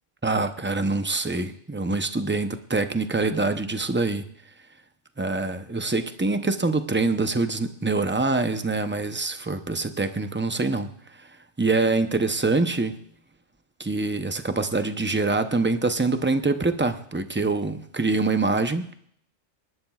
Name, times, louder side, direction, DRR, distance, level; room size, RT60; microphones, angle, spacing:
voice 1, 0.2-4.2 5.2-10.9 11.6-13.0 13.8-18.9, right 3 dB, 15° right, 8 dB, 0.4 m, -25 dB
27.0 x 11.5 x 2.4 m, 0.65 s
omnidirectional pair, 1.3 m